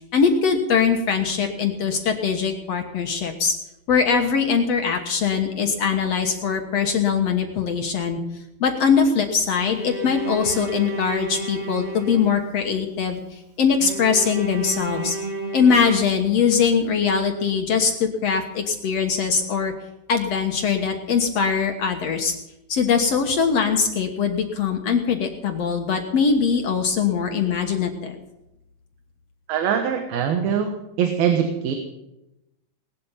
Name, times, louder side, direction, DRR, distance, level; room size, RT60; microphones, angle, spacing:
voice 1, 0.1-3.5 3.9-8.2 8.6-15.2 15.5-19.7 20.1-22.3 22.7-28.2, left 6 dB, 60° left, 3 dB, 2.0 m, -22 dB
Bowed string instrument, 9.6-12.8 13.8-16.7, right 3 dB, 45° right, 3.5 m, -32 dB
voice 2, 29.5-31.8, right 8 dB, 85° right, 5 dB, 3.2 m, -23 dB
19.5 x 12.0 x 5.7 m, 0.90 s
omnidirectional pair, 4.1 m